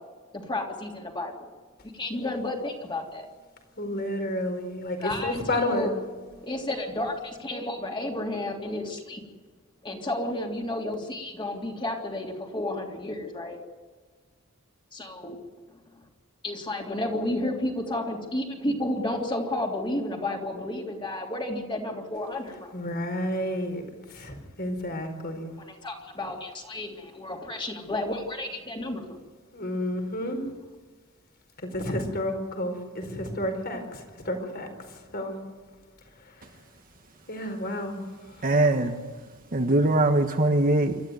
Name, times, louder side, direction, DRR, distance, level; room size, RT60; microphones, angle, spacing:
voice 1, 0.3-1.5 1.8-3.3 5.0-5.9 6.3-9.2 9.8-13.6 14.9-15.4 16.4-22.7 25.6-29.2, left 1 dB, 25° left, 1 dB, 3.3 m, -32 dB
voice 2, 3.8-5.9 22.7-23.8 24.1-25.6 29.5-30.4 31.6-35.4 36.4-36.5 37.3-38.1 38.4-38.5, left 1 dB, 50° left, 5 dB, 4.6 m, -31 dB
voice 3, 38.4-39.0 39.5-41.0, right 2 dB, 40° right, 4 dB, 1.3 m, -21 dB
26.5 x 13.0 x 9.6 m, 1.5 s
head